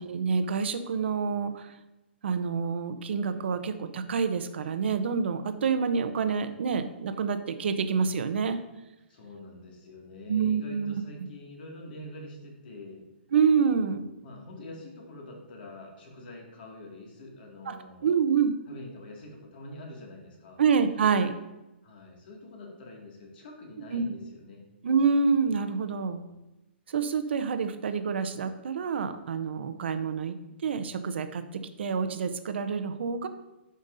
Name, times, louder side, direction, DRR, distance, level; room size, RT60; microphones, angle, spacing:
voice 1, 0.0-1.7 2.2-8.6 10.3-10.9 13.3-14.1 17.7-17.8 18.0-18.5 20.6-21.3 23.9-24.0 24.8-26.2 26.9-33.3, right 6 dB, 70° right, 9 dB, 0.7 m, -27 dB
voice 2, 9.1-13.0 14.2-18.1 18.7-20.6 21.8-24.6 25.9-26.3, left 1 dB, 55° left, 0 dB, 2.1 m, -45 dB
11.5 x 5.2 x 2.6 m, 1.0 s
hypercardioid pair, 160°, 6 cm